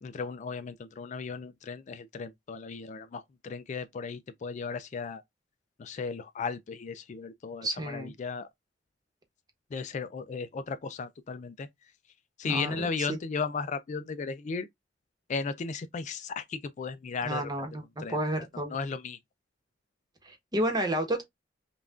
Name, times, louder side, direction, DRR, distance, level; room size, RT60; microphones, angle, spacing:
voice 1, 0.0-5.2 5.8-8.5 9.7-11.7 12.4-14.7 15.3-17.4 18.0-19.2, left 5 dB, 40° left, 0.3 m, -35 dB
voice 2, 7.6-8.1 12.4-13.2 17.2-18.8 20.2-21.2, right 1 dB, 20° right, 1.1 m, -31 dB
5.5 x 2.4 x 2.4 m
head